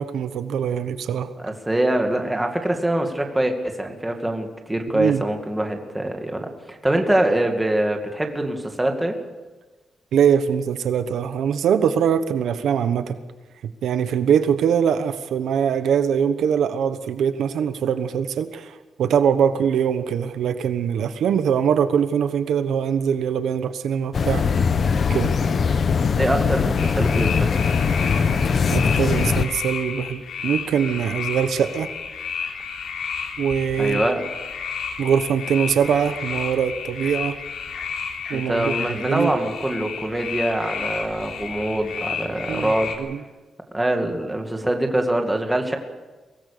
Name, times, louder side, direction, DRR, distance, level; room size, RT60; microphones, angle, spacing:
voice 1, 0.0-1.3 4.9-5.2 10.1-13.2 13.8-24.4 25.1-25.3 28.7-31.9 33.4-34.0 35.0-37.4 38.3-38.7 39.0-39.3 42.5-42.7 43.0-43.2, right 8 dB, 80° right, 10 dB, 1.1 m, -22 dB
voice 2, 1.4-9.2 26.2-27.6 33.8-34.3 38.3-42.9 43.7-45.8, right 1 dB, 10° right, 3 dB, 2.2 m, -24 dB
sound 1, 24.1-29.5, left 5 dB, 40° left, 0.9 m, -21 dB
sound 2, 26.8-43.0, left 6 dB, 90° left, 3.4 m, -31 dB
24.0 x 18.5 x 6.8 m, 1.2 s
wide cardioid pair, 170°, 0 cm